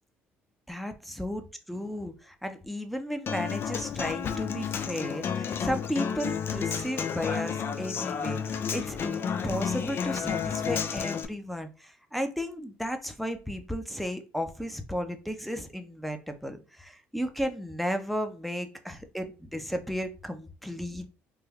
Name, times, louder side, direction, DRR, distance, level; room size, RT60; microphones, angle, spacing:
voice 1, 0.7-21.1, equal, ahead, 7 dB, 0.6 m, -34 dB
Human voice / Acoustic guitar, 3.3-11.2, left 7 dB, 50° left, 0.4 m, -31 dB
3.2 x 2.2 x 3.5 m, 0.34 s
supercardioid pair, 75°, 5 cm